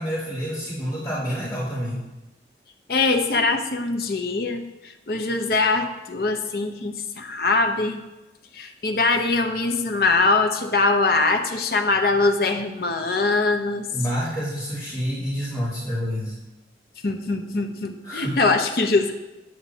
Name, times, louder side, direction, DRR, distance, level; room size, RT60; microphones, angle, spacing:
voice 1, 0.0-2.0 13.9-16.4 18.0-18.4, equal, 20° left, -12 dB, 3.0 m, -28 dB
voice 2, 2.9-8.0 8.5-13.8 17.0-19.1, left 3 dB, 55° left, 4 dB, 0.7 m, -22 dB
9.3 x 8.7 x 2.8 m, 1.0 s
head